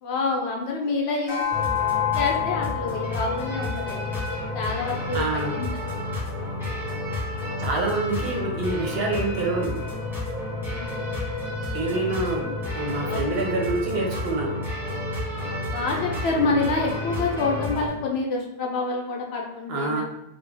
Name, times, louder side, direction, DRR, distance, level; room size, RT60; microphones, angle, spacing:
voice 1, 0.0-1.4 2.1-4.2 4.5-5.7 5.9-6.1 10.6-11.1 12.4-12.5 13.1-13.2 15.7-20.0, left 3 dB, 70° left, 0 dB, 0.8 m, -27 dB
sound 1, 1.3-5.9, left 10 dB, 40° left, 0.7 m, -30 dB
sound 2, 1.5-17.9, left 2 dB, ahead, 0.7 m, -30 dB
voice 2, 5.1-5.5 7.6-9.8 11.7-12.4 12.7-14.6 19.7-20.0, right 2 dB, 65° right, 1 dB, 0.7 m, -26 dB
2.3 x 2.1 x 3.2 m, 0.81 s
omnidirectional pair, 1.2 m